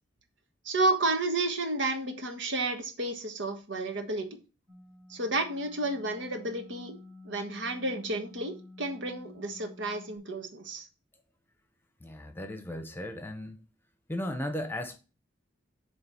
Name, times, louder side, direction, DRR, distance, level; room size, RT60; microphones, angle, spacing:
voice 1, 0.6-4.4 5.1-7.0 7.2-10.9, right 2 dB, 85° right, 1.4 m, -31 dB
sound 1, 4.7-10.2, left 2 dB, 20° right, 2.3 m, -51 dB
voice 2, 12.0-13.6 14.1-15.0, left 1 dB, 10° left, 0.8 m, -36 dB
7.8 x 3.3 x 5.5 m
head